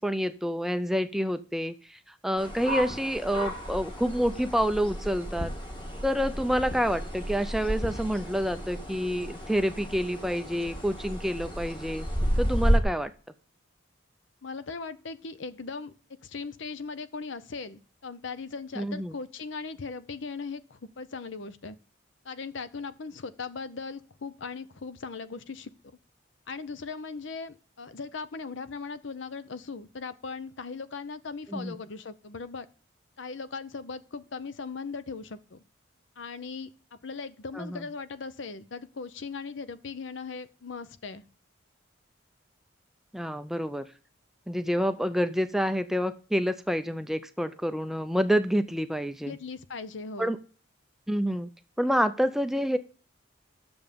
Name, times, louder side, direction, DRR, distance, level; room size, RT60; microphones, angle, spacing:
voice 1, 0.0-5.5 6.0-12.1 12.4-13.1 18.8-19.1 31.5-31.8 37.6-37.8 43.1-43.9 44.5-49.4 50.2-50.4 51.1-51.5 51.8-52.8, equal, ahead, 10 dB, 0.4 m, -28 dB
sound 1, 2.4-12.8, equal, 25° left, 1.6 m, -32 dB
voice 2, 14.4-15.9 16.2-21.8 22.2-25.7 26.5-32.7 33.2-35.6 36.2-41.2 49.3-50.3, left 4 dB, 70° left, 13 dB, 0.7 m, -39 dB
9.6 x 7.0 x 5.1 m, 0.40 s
head